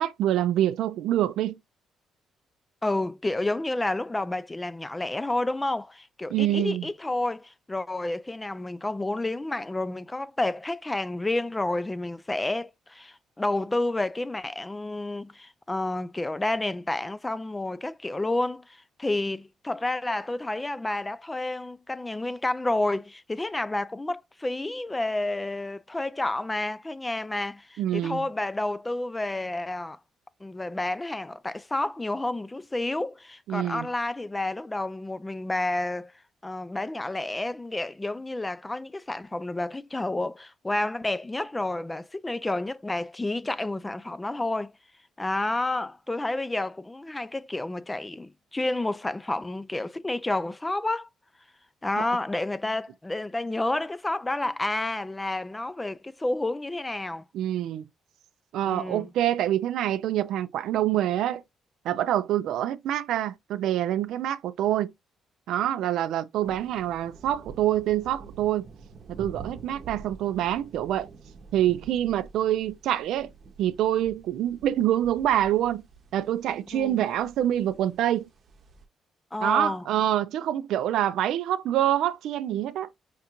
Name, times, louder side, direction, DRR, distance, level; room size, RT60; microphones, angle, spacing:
voice 1, 0.0-1.6 6.3-6.9 27.8-28.3 33.5-33.9 52.0-52.1 57.3-57.8 58.5-61.4 61.8-64.9 65.5-68.7 69.1-71.1 71.5-73.3 73.6-75.8 76.1-78.3 79.4-82.9, right 12 dB, 85° right, 0.4 m, -26 dB
voice 2, 2.8-30.0 30.4-36.1 36.4-44.7 45.2-51.1 51.8-57.2 58.7-59.1 76.7-77.0 79.3-79.8, left 2 dB, 15° left, 0.3 m, -30 dB
sound 1, 66.4-78.8, right 4 dB, 55° right, 0.8 m, -47 dB
5.3 x 2.4 x 2.9 m
cardioid pair, 90°, 0 cm